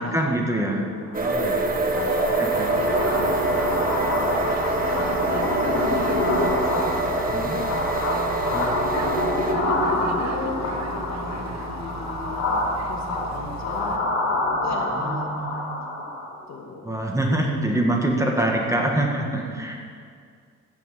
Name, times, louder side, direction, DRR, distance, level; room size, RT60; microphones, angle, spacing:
voice 1, 0.0-0.9 1.2-1.7 2.4-2.7 7.3-7.6 8.5-8.7 14.9-15.6 16.8-19.8, right 1 dB, 10° right, 0 dB, 1.8 m, -25 dB
sound 1, 1.1-16.4, left 2 dB, 80° left, 3.4 m, -27 dB
sound 2, 1.1-9.5, right 2 dB, 30° right, 1.4 m, -25 dB
voice 2, 1.7-4.3 4.7-8.5 9.2-14.0 14.6-15.2 16.5-17.0 18.8-19.1 19.5-19.7, left 4 dB, 65° left, 0 dB, 2.1 m, -36 dB
sound 3, 2.5-14.0, right 6 dB, 60° right, 1.0 m, -36 dB
15.0 x 6.0 x 7.6 m, 2.2 s
cardioid pair, 90°, 30 cm